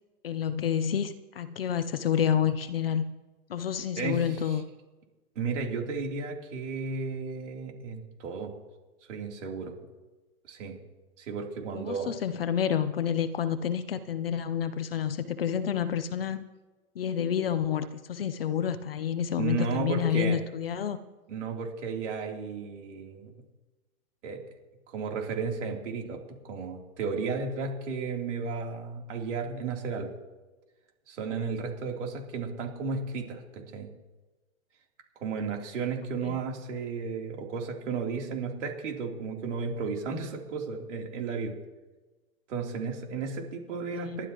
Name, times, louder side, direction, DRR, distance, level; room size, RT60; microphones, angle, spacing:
voice 1, 0.2-3.0 3.5-4.6 11.7-16.4 17.0-21.0 36.2-36.4 43.7-44.2, left 8 dB, 40° left, 12 dB, 0.7 m, -29 dB
voice 2, 4.0-4.4 5.4-8.5 9.1-9.7 10.5-10.8 11.2-12.2 19.4-20.4 21.3-23.3 24.2-24.4 24.9-30.1 31.1-33.9 35.2-41.6 42.5-44.3, right 5 dB, 50° right, 0 dB, 3.5 m, -33 dB
29.5 x 12.0 x 3.0 m, 1.2 s
hypercardioid pair, 175°, 44 cm